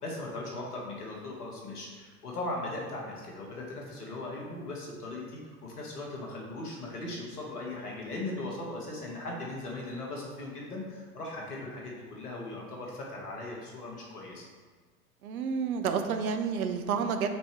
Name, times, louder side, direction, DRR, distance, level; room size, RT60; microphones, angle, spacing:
voice 1, 0.0-14.4, left 2 dB, 80° left, -2 dB, 1.7 m, -38 dB
voice 2, 15.2-17.4, right 6 dB, 70° right, 7 dB, 0.8 m, -30 dB
5.2 x 4.3 x 4.7 m, 1.5 s
hypercardioid pair, 95°, 45 cm